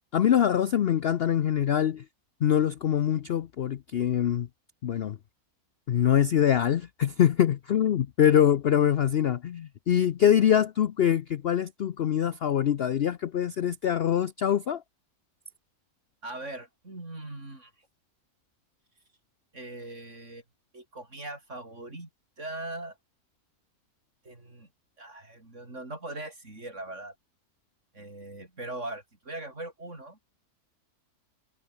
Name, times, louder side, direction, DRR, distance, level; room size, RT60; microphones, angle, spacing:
voice 1, 0.1-2.0 2.4-4.5 4.8-5.2 5.9-14.8, left 9 dB, 55° left, 0.7 m, -24 dB
voice 2, 16.2-17.7 19.5-20.4 20.7-22.1 22.4-23.0 24.2-24.7 25.0-27.2 27.9-30.2, right 2 dB, 50° right, 5.9 m, -40 dB
omnidirectional pair, 1.6 m